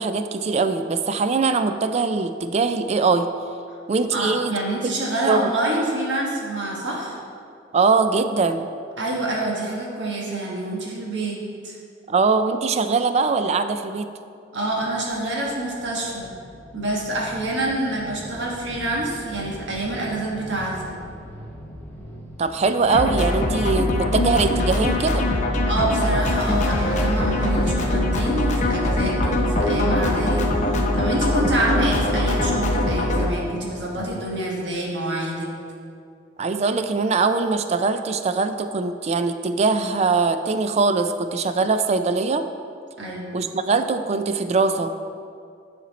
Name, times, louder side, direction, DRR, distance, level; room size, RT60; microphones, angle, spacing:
voice 1, 0.0-3.3 3.9-4.5 4.8-4.9 5.3-5.5 7.7-8.7 12.1-14.1 22.4-25.3 36.4-42.4 43.3-44.9, right 4 dB, 35° right, 9 dB, 0.3 m, -22 dB
voice 2, 4.1-7.2 9.0-11.4 11.6-11.8 14.5-16.3 16.7-21.0 25.7-35.5 43.0-43.4, right 1 dB, 75° right, -2 dB, 1.4 m, -27 dB
sound 1, 14.8-34.3, equal, 10° left, 0.9 m, -40 dB
sound 2, 22.9-33.2, left 1 dB, 40° left, 0.7 m, -22 dB
sound 3, 26.4-30.0 30.3-30.4, right 1 dB, 15° right, 1.6 m, -34 dB
10.0 x 4.4 x 4.0 m, 2.3 s
head